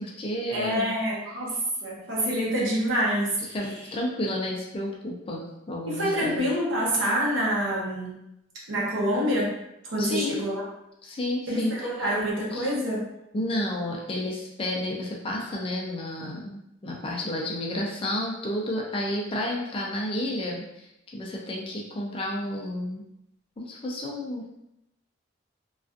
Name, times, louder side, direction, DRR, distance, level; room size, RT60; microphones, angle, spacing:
voice 1, 0.0-0.9 3.5-6.4 10.0-10.5 11.0-11.9 12.5-12.7 13.3-20.9 21.1-23.0 23.6-24.5, left 1 dB, 30° left, -2 dB, 0.4 m, -31 dB
voice 2, 0.5-3.6 5.9-8.1 8.7-9.5 9.9-10.6 11.5-13.0, equal, 85° right, -5 dB, 0.7 m, -26 dB
2.4 x 2.3 x 2.4 m, 0.83 s
head